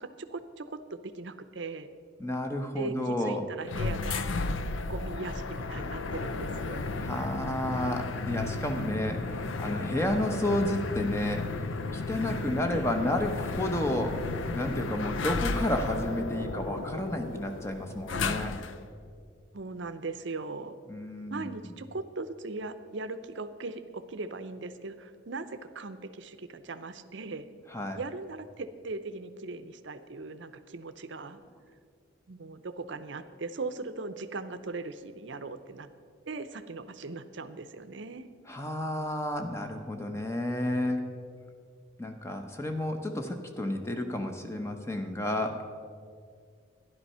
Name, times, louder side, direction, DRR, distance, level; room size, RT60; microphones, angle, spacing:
voice 1, 0.0-1.9 2.8-4.6 4.9-6.9 12.7-12.9 19.5-20.8 21.3-27.5 27.9-31.4 32.3-35.9 36.3-38.3, right 3 dB, 65° right, 11 dB, 0.7 m, -39 dB
voice 2, 2.2-3.5 7.0-18.6 20.9-21.7 27.7-28.0 38.5-41.1 42.0-45.6, left 1 dB, 15° left, 5 dB, 0.9 m, -31 dB
sound 1, 3.7-18.9, left 3 dB, 75° left, 0.6 m, -34 dB
12.0 x 11.0 x 5.5 m, 2.2 s
head